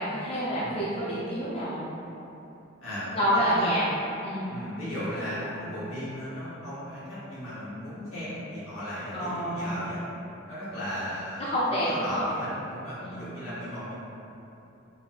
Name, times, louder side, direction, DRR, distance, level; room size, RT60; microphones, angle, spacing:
voice 1, 0.0-1.9 3.2-3.9 4.2-4.5 9.1-9.8 11.4-12.3 13.0-13.1, equal, 30° left, -8 dB, 0.4 m, -28 dB
voice 2, 2.8-3.7 4.5-10.0 10.5-13.9, equal, 85° left, -12 dB, 1.3 m, -36 dB
4.0 x 2.3 x 2.3 m, 3.0 s
head